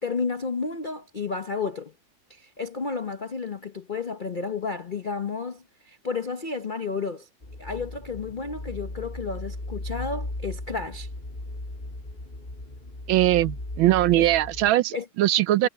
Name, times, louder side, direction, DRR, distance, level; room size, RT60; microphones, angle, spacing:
voice 1, 0.0-1.9 2.3-7.3 7.6-11.1 14.1-14.3 14.9-15.1 15.6-15.7, left 4 dB, 85° left, 0.4 m, -32 dB
sound 1, 7.4-14.7, left 2 dB, 20° left, 2.9 m, -37 dB
voice 2, 13.1-15.7, right 15 dB, 75° right, 1.3 m, -21 dB
omnidirectional pair, 2.4 m